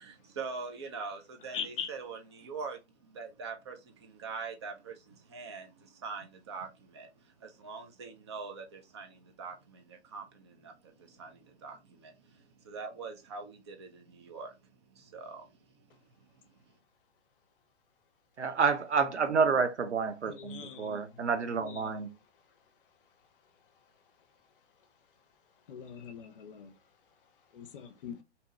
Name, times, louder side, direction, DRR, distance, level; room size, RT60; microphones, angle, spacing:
voice 1, 0.0-7.1 7.4-14.6 14.9-15.5, right 4 dB, 25° right, 0.3 m, -43 dB
voice 2, 1.5-1.9 20.3-21.1 21.6-21.9 25.7-26.7 27.5-28.2, left 7 dB, 50° left, 0.6 m, -41 dB
voice 3, 18.4-22.1, right 5 dB, 90° right, 0.5 m, -29 dB
2.8 x 2.2 x 2.9 m
figure-of-eight pair, 120°, 34 cm